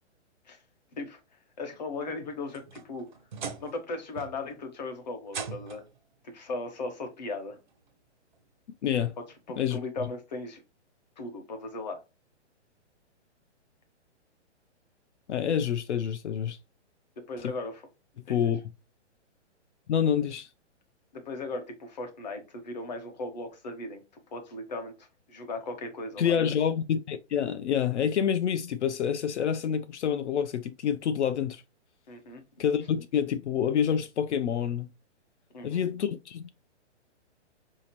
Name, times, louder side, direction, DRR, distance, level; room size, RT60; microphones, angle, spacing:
voice 1, 1.0-3.1 3.6-5.9 6.2-7.6 9.2-10.6 11.2-12.0 17.2-17.9 18.3-18.5 21.1-26.3 32.1-32.4 35.5-35.9, left 2 dB, 35° left, 0.9 m, -37 dB
sound 1, 2.3-3.8 4.2-4.6 5.3-6.0 7.1-7.2 7.9-8.0 9.6-9.7, right 5 dB, 40° right, 0.5 m, -40 dB
voice 2, 8.8-9.1 9.6-9.8 15.3-16.6 18.3-18.6 19.9-20.5 26.2-31.6 32.6-34.9 35.6-36.5, left 8 dB, 70° left, 0.5 m, -27 dB
5.0 x 2.8 x 2.8 m
hypercardioid pair, 175°, 36 cm